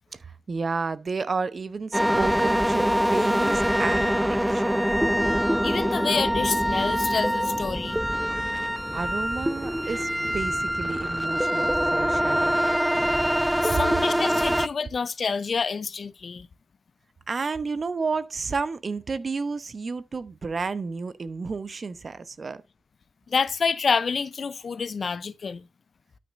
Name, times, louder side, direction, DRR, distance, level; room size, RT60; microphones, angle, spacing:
voice 1, 0.1-4.8 8.9-12.7 13.7-13.8 17.3-22.6, right 4 dB, 50° right, 0.9 m, -31 dB
sound 1, 1.9-14.7, equal, 5° right, 0.4 m, -24 dB
voice 2, 5.6-8.0 13.6-16.5 23.3-25.6, left 5 dB, 55° left, 0.6 m, -28 dB
12.5 x 6.2 x 2.6 m
supercardioid pair, 45°, 0 cm